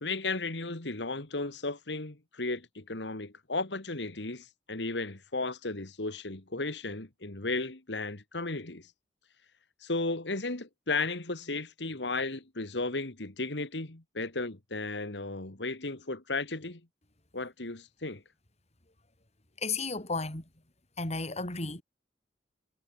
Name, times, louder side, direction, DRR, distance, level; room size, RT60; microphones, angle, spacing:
voice 1, 0.0-8.9 9.8-16.8 17.3-18.2, left 3 dB, 80° left, 2.2 m, -34 dB
voice 2, 19.6-20.4 21.0-21.8, left 3 dB, 40° left, 4.0 m, -33 dB
head